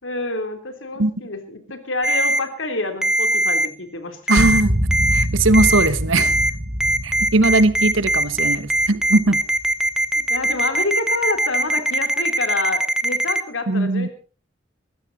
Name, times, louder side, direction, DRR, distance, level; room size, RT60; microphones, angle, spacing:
voice 1, 0.0-4.4 10.2-14.1, left 2 dB, 75° left, 7 dB, 3.2 m, -28 dB
Ringtone, 2.0-2.4 3.0-3.7 4.3-4.6 4.9-5.2 5.5-5.9 6.2-6.5 6.8-13.4, right 1 dB, 5° right, 1.1 m, -20 dB
voice 2, 4.3-4.7 5.1-6.4 7.0-9.4 13.7-14.1, right 2 dB, 80° right, 15 dB, 1.2 m, -19 dB
sound 1, 4.4-9.7, equal, 35° right, 1.6 m, -25 dB
21.5 x 15.5 x 4.0 m, 0.36 s
head